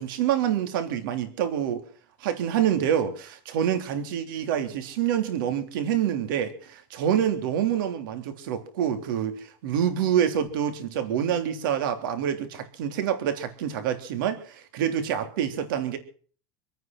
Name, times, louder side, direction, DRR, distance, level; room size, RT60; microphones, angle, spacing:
voice 1, 0.0-1.8 2.2-16.0, right 9 dB, 75° right, 3.3 m, -27 dB
25.5 x 9.3 x 6.0 m
supercardioid pair, 160°, 11 cm